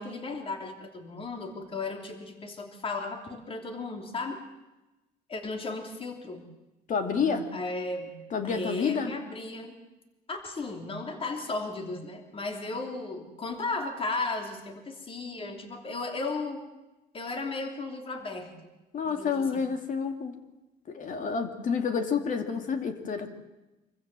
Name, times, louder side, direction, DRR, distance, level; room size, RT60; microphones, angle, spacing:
voice 1, 0.0-4.4 5.3-6.4 7.5-8.1 8.4-9.8 10.3-16.6 17.1-18.5 19.0-19.6, left 3 dB, 35° left, 4 dB, 3.1 m, -35 dB
voice 2, 6.9-7.5 8.3-9.1 18.9-20.3 20.9-23.3, left 6 dB, 50° left, 6 dB, 2.5 m, -29 dB
25.5 x 15.0 x 7.5 m, 1.0 s
cardioid pair, 110°, 17 cm